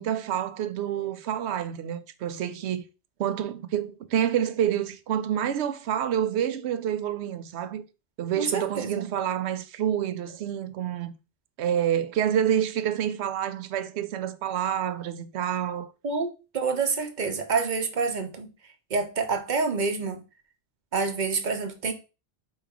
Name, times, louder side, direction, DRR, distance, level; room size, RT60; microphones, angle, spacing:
voice 1, 0.0-2.8 3.2-7.8 8.2-11.1 11.6-15.9, right 10 dB, 80° right, 0.8 m, -28 dB
voice 2, 8.4-9.1 16.0-18.5 18.9-20.2 20.9-21.9, right 4 dB, 50° right, 0.8 m, -27 dB
4.5 x 3.1 x 3.5 m
omnidirectional pair, 1.1 m